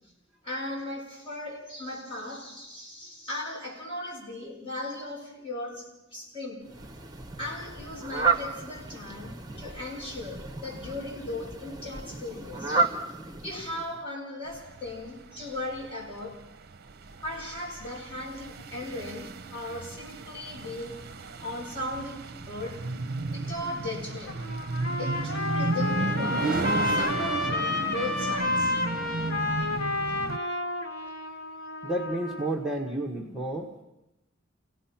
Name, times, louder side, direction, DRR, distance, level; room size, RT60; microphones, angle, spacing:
voice 1, 0.4-6.7 7.4-12.9 13.4-16.5 17.2-22.8 23.3-24.4 25.0-28.7 30.3-30.5, left 2 dB, 30° left, -5 dB, 7.1 m, -37 dB
Fowl, 6.7-14.0, right 4 dB, 20° right, 1.1 m, -32 dB
sound 1, 14.5-30.4, right 3 dB, 55° right, 0.8 m, -33 dB
Trumpet, 24.1-32.5, left 2 dB, 60° left, 3.1 m, -30 dB
voice 2, 31.8-33.8, right 1 dB, 5° right, 1 dB, 1.4 m, -31 dB
29.5 x 17.5 x 5.9 m, 0.91 s
head